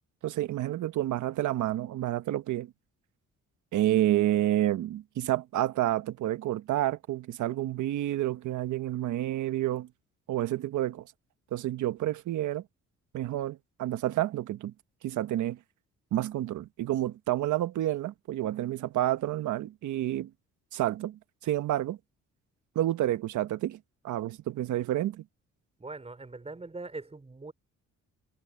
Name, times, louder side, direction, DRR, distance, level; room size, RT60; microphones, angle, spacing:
voice 1, 0.2-2.7 3.7-9.9 10.3-11.0 11.5-12.6 13.1-14.7 15.0-15.6 16.1-20.3 20.7-22.0 22.7-23.8 24.0-25.2, right 13 dB, 80° right, 1.2 m, -29 dB
voice 2, 25.8-27.5, right 3 dB, 20° right, 4.3 m, -41 dB
cardioid pair, 90°, 30 cm